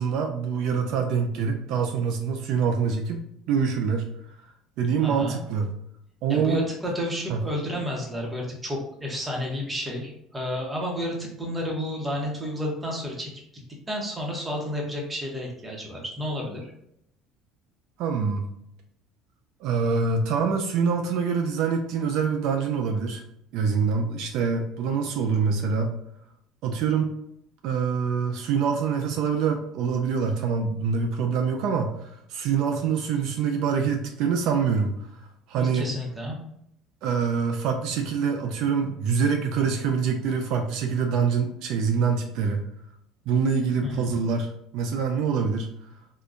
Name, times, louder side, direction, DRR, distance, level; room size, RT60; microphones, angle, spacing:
voice 1, 0.0-4.1 4.8-5.7 6.2-6.7 7.3-7.4 18.0-18.5 19.6-23.2 23.5-25.9 26.6-27.2 27.6-34.9 35.5-35.9 37.0-42.7 43.3-45.7, right 6 dB, 65° right, 4 dB, 0.3 m, -25 dB
voice 2, 5.0-5.4 6.3-13.3 13.9-16.7 35.6-36.4 43.8-44.1, equal, 15° right, -1 dB, 0.9 m, -31 dB
3.5 x 2.2 x 2.5 m, 0.74 s
cardioid pair, 125°, 0 cm